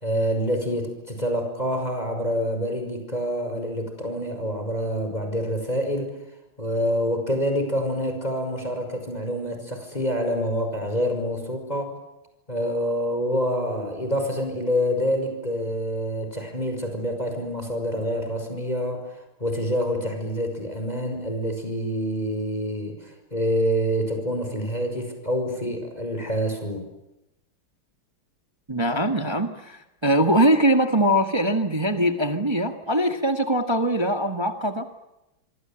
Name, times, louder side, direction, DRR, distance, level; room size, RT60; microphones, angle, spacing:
voice 1, 0.0-6.1 6.6-11.9 12.5-19.1 19.4-26.9, equal, 20° left, 5 dB, 5.7 m, -27 dB
voice 2, 28.7-34.9, right 1 dB, 15° right, 6 dB, 1.5 m, -22 dB
26.5 x 25.0 x 8.9 m, 0.93 s
omnidirectional pair, 2.2 m